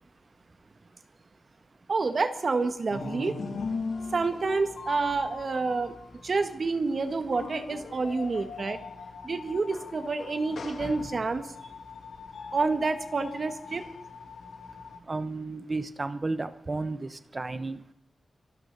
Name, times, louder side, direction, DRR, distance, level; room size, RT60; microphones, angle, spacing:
voice 1, 1.9-3.3 4.1-6.0 6.2-8.8 9.2-11.5 12.5-13.8, right 3 dB, 50° right, 8 dB, 1.6 m, -28 dB
sound 1, 2.9-15.0, left 4 dB, 90° left, 2.2 m, -40 dB
voice 2, 15.1-17.8, right 3 dB, 30° right, 11 dB, 1.0 m, -33 dB
25.5 x 13.0 x 4.1 m, 0.78 s
wide cardioid pair, 115°, 0 cm